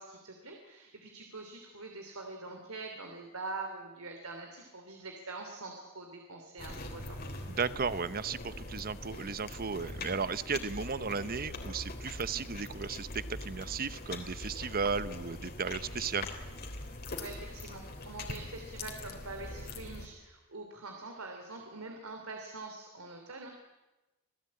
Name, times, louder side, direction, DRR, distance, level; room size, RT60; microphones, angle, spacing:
voice 1, 0.0-7.2 17.2-23.5, right 3 dB, 85° right, 3 dB, 3.2 m, -44 dB
sound 1, 6.6-20.1, left 2 dB, 45° left, 3.3 m, -42 dB
voice 2, 7.5-16.3, right 5 dB, 45° right, 15 dB, 0.9 m, -35 dB
27.0 x 17.5 x 8.7 m, 1.1 s
head